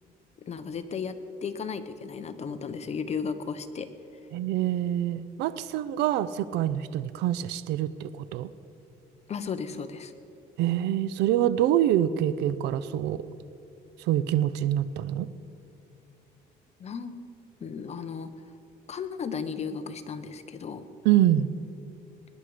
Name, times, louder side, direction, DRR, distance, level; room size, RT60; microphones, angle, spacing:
voice 1, 0.4-1.2 1.4-3.9 9.3-10.1 16.8-17.2 17.6-18.3 18.9-20.9, left 6 dB, 40° left, 10 dB, 1.1 m, -34 dB
voice 2, 4.3-8.5 10.6-13.2 14.0-15.3 21.0-21.5, right 12 dB, 90° right, 15 dB, 0.6 m, -25 dB
20.5 x 11.0 x 5.0 m, 3.0 s
cardioid pair, 110°, 17 cm